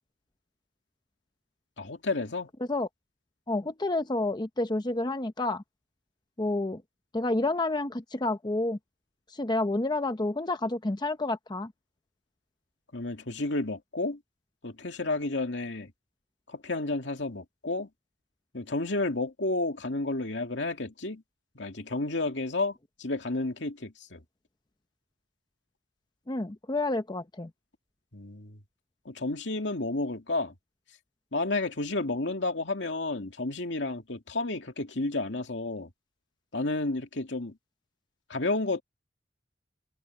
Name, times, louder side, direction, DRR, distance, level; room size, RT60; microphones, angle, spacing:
voice 1, 1.8-2.5 12.9-14.2 14.6-15.9 16.5-17.9 18.5-21.2 21.5-24.2 28.1-28.6 29.1-30.5 31.3-35.9 36.5-37.6 38.3-38.8, left 2 dB, 75° left, 2.4 m, -31 dB
voice 2, 3.5-5.6 6.4-6.8 7.1-8.8 9.3-11.7 26.3-27.5, left 2 dB, 25° left, 0.8 m, -29 dB
head